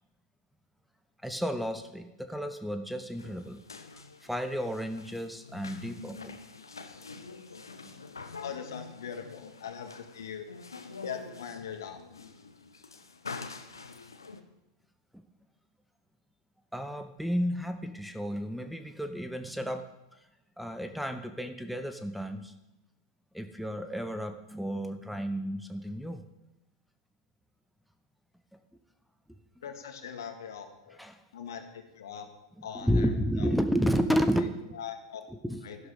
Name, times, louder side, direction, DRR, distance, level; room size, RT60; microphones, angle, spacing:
voice 1, 1.2-3.6 4.2-6.3 15.1-15.2 16.7-19.9 20.6-22.5 23.3-26.2 31.0-31.2 32.7-34.7 35.3-35.6, equal, ahead, 8 dB, 0.9 m, -31 dB
sound 1, 3.1-14.4, left 4 dB, 85° left, 1.1 m, -46 dB
voice 2, 8.4-10.5 11.0-12.0 29.6-31.0 31.3-32.3 32.6-33.1 33.4-33.5 34.7-35.2 35.6-35.8, left 7 dB, 70° left, 6 dB, 1.9 m, -41 dB
12.5 x 11.5 x 5.1 m, 0.94 s
figure-of-eight pair, 95°, 2 cm